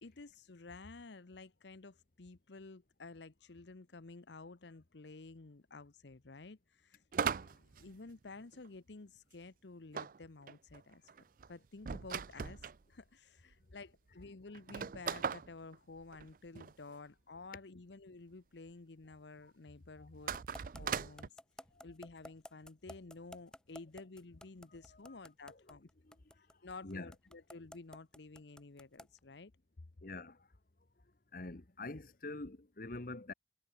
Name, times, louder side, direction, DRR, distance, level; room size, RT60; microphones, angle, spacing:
voice 1, 0.0-7.0 7.3-11.0 11.5-20.3 20.6-21.4 21.8-25.9 26.6-29.5, left 3 dB, 70° left, 0.9 m, -52 dB
sound 1, 7.1-8.7 9.9-12.8 13.5-13.6 13.8-13.9 14.5-16.7 20.1-21.3, right 6 dB, 45° right, 0.4 m, -39 dB
sound 2, 20.3-29.2, left 1 dB, 5° left, 0.9 m, -52 dB
voice 2, 30.0-30.3 31.3-33.3, left 2 dB, 50° left, 1.2 m, -44 dB
head